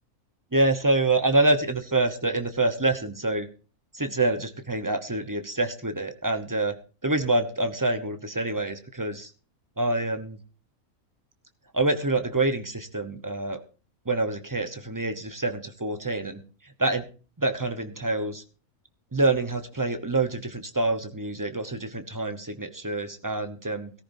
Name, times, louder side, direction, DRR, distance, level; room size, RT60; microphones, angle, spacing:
voice 1, 0.5-3.5 3.9-6.8 7.0-9.3 9.8-10.4 11.7-13.6 14.1-16.4 16.8-17.0 17.4-18.4 19.1-23.9, right 2 dB, 15° right, 8 dB, 0.8 m, -26 dB
17.5 x 14.0 x 2.7 m, 0.36 s
omnidirectional pair, 1.5 m